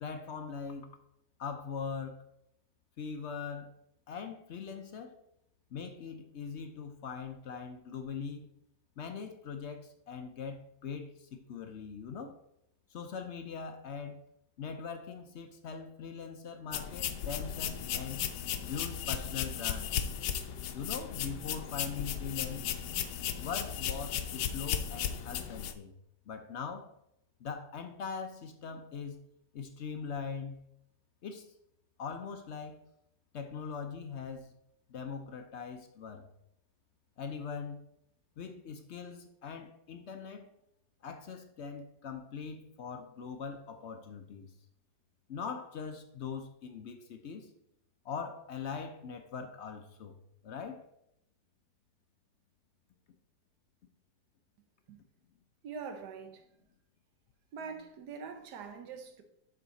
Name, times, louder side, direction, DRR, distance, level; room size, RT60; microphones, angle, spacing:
voice 1, 0.0-1.0 1.4-2.2 3.0-3.7 4.1-5.2 5.7-8.5 9.0-12.4 12.9-14.2 14.6-18.2 18.6-20.0 20.7-22.7 23.4-25.9 26.3-26.9 27.4-29.2 29.5-30.6 31.2-31.5 32.0-32.8 33.3-34.5 34.9-36.3 37.2-37.8 38.4-40.5 41.0-44.5 45.3-47.5 48.0-50.2 50.4-50.9, left 6 dB, 60° left, 0.7 m, -41 dB
sound 1, 16.7-25.7, left 9 dB, 80° left, 1.2 m, -35 dB
voice 2, 55.6-56.5 57.5-59.2, right 6 dB, 75° right, 1.5 m, -43 dB
7.3 x 5.6 x 4.0 m
omnidirectional pair, 1.8 m